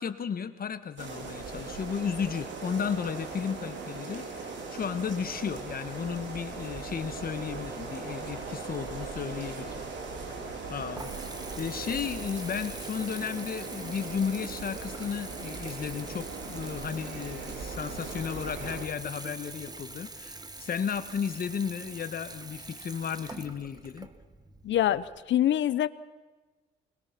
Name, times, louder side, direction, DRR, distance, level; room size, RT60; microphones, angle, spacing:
voice 1, 0.0-9.8 10.4-24.1, left 7 dB, 45° left, 10 dB, 1.5 m, -34 dB
sound 1, 1.0-18.9, right 4 dB, 70° right, 3.9 m, -39 dB
Water tap faucet / Bathtub (filling or washing) / Trickle dribble, 10.3-25.2, right 2 dB, 20° right, 1.5 m, -45 dB
voice 2, 24.6-25.9, left 11 dB, 70° left, 16 dB, 0.9 m, -25 dB
22.0 x 21.5 x 6.0 m, 1.3 s
cardioid pair, 90°, 20 cm